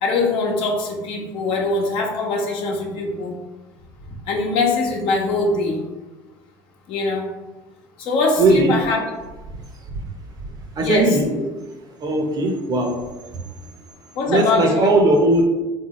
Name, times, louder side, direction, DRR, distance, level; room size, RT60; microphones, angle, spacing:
voice 1, 0.0-3.4 4.3-5.8 6.9-7.3 8.0-9.0 10.8-11.4 14.1-14.9, left 3 dB, 65° left, 0 dB, 0.9 m, -22 dB
voice 2, 8.4-8.7 9.9-10.0 10.8-11.3 12.0-12.9 14.3-15.4, right 2 dB, 45° right, 2 dB, 0.8 m, -17 dB
3.6 x 2.7 x 3.0 m, 1.1 s
supercardioid pair, 85°, 10 cm